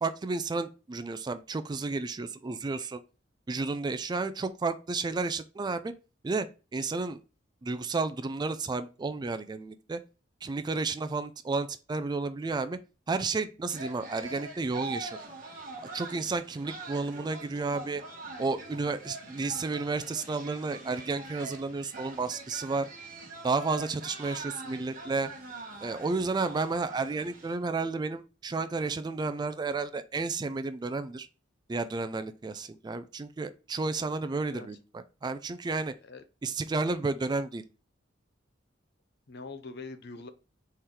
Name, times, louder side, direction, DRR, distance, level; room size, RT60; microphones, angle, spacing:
voice 1, 0.0-3.0 3.5-5.9 6.2-6.5 6.7-7.2 7.6-10.0 10.4-12.8 13.1-15.2 15.9-18.0 18.4-22.9 23.4-25.3 25.8-31.3 31.7-35.9 36.4-37.6, right 3 dB, 20° right, 0.3 m, -32 dB
sound 1, 13.7-27.6, right 3 dB, 50° right, 1.1 m, -44 dB
voice 2, 34.3-34.7 36.0-36.2 39.3-40.3, left 3 dB, 60° left, 0.6 m, -43 dB
4.3 x 3.8 x 3.2 m
head